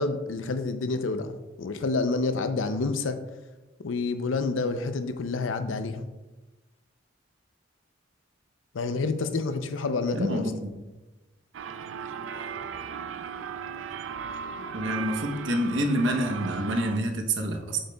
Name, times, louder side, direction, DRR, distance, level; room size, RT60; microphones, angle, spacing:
voice 1, 0.0-3.2 3.8-6.1 8.7-10.5, left 3 dB, 85° left, 9 dB, 0.5 m, -28 dB
voice 2, 10.1-10.7 14.7-17.8, right 1 dB, 70° right, 4 dB, 0.9 m, -27 dB
sound 1, 11.5-17.0, right 7 dB, 90° right, 0.4 m, -36 dB
7.8 x 6.5 x 2.3 m, 1.1 s
head